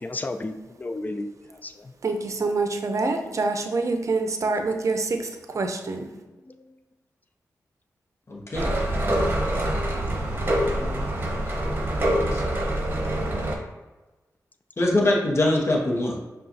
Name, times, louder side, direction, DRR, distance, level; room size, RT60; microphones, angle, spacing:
voice 1, 0.0-1.3 1.6-1.9 8.6-8.7 10.6-11.1, left 2 dB, 25° left, 9 dB, 0.3 m, -33 dB
voice 2, 2.0-6.1, right 3 dB, 55° right, 5 dB, 0.6 m, -26 dB
voice 3, 8.3-8.8 11.5-11.6 12.3-12.4 14.8-16.2, left 1 dB, 40° left, -1 dB, 0.9 m, -23 dB
sound 1, 8.5-13.6, right 1 dB, 35° right, 0.9 m, -25 dB
5.4 x 2.4 x 2.7 m, 1.1 s
cardioid pair, 55°, 6 cm